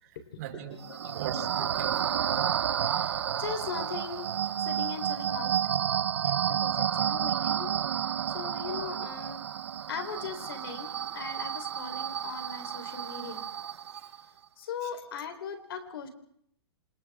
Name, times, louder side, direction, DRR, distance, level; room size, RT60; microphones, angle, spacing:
voice 1, 0.0-0.8 1.1-2.1 6.3-6.4 13.9-14.0 14.8-14.9, right 9 dB, 40° right, 4 dB, 4.3 m, -40 dB
sound 1, 0.8-14.2, right 9 dB, 80° right, 0.9 m, -31 dB
voice 2, 2.8-4.3 4.6-5.6 6.5-7.7 8.0-9.4 9.9-13.5 14.6-16.1, left 6 dB, 60° left, 7 dB, 4.0 m, -39 dB
27.5 x 27.5 x 3.7 m, 0.68 s
hypercardioid pair, 165°, 14 cm